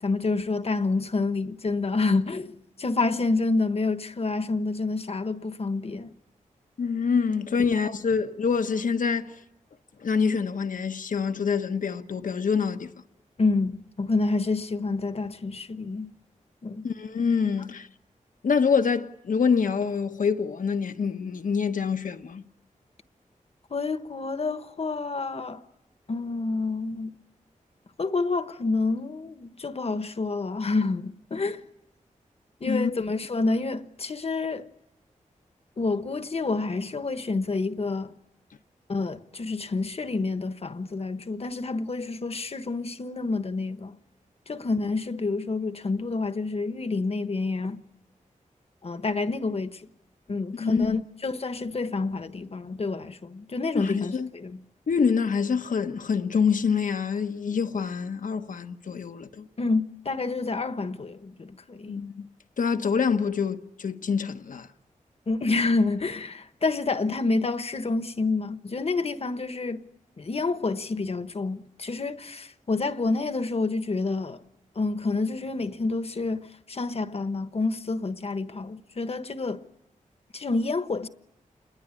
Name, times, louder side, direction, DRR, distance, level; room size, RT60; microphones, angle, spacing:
voice 1, 0.0-6.1 13.4-16.1 16.6-16.8 23.7-25.6 26.1-27.1 28.0-31.6 32.6-34.7 35.8-38.1 38.9-43.9 44.5-47.8 48.8-49.8 50.3-54.6 59.6-62.0 65.3-69.8 70.2-74.4 74.7-79.6 80.3-81.1, left 3 dB, 50° left, 1.2 m, -28 dB
voice 2, 6.8-9.3 10.0-12.9 16.8-17.9 18.4-22.4 32.7-32.9 50.6-51.0 53.7-54.3 54.9-59.5 61.9-62.3 62.6-64.7, left 6 dB, 80° left, 1.2 m, -26 dB
28.0 x 21.5 x 9.7 m
wide cardioid pair, 85°, 14 cm